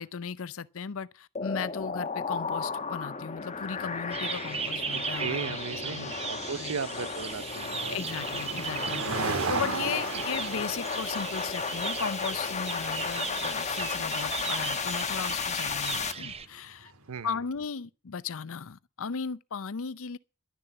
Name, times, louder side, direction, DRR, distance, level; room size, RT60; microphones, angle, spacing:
voice 1, 0.0-5.6 5.8-6.1 6.6-6.8 7.9-9.0 9.5-16.9 17.2-20.2, left 6 dB, 65° left, 0.6 m, -36 dB
sound 1, 1.3-16.1, left 5 dB, 30° left, 1.1 m, -34 dB
sound 2, 3.5-17.1, right 4 dB, 75° right, 1.7 m, -38 dB
sound 3, 4.1-16.5, right 6 dB, 30° right, 0.8 m, -37 dB
voice 2, 4.9-8.0 10.1-10.2 17.1-17.4, right 6 dB, 90° right, 0.7 m, -37 dB
12.0 x 6.9 x 8.9 m
head